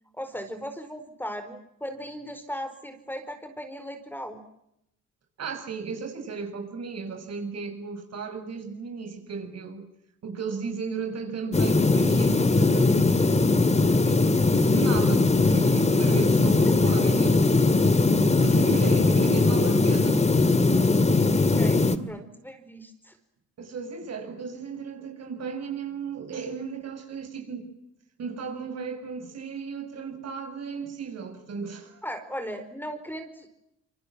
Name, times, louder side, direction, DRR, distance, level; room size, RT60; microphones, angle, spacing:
voice 1, 0.1-4.4 21.6-23.2 32.0-33.5, equal, 5° left, 4.6 m, -37 dB
voice 2, 5.4-9.9 10.2-13.6 14.1-14.3 14.7-17.5 18.4-20.2 22.0-22.1 23.6-27.7 28.2-32.0, right 5 dB, 55° right, 7.6 m, -35 dB
sound 1, 11.5-22.0, left 3 dB, 20° left, 2.1 m, -20 dB
27.5 x 24.5 x 7.7 m
cardioid pair, 90°, 30 cm